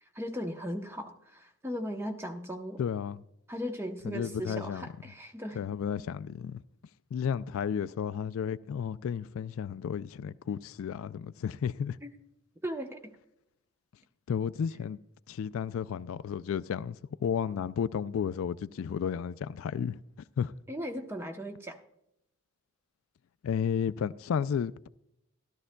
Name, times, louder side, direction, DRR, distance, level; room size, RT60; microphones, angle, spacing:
voice 1, 0.1-2.8 3.5-5.6 12.0-12.2 12.6-13.0 20.7-21.8, equal, 10° right, 0.8 m, -37 dB
voice 2, 2.8-3.2 4.0-4.9 5.6-6.6 7.1-12.0 14.3-15.0 15.3-20.0 20.4-20.5 23.4-24.9, left 7 dB, 70° left, 0.3 m, -32 dB
14.0 x 13.0 x 2.2 m
head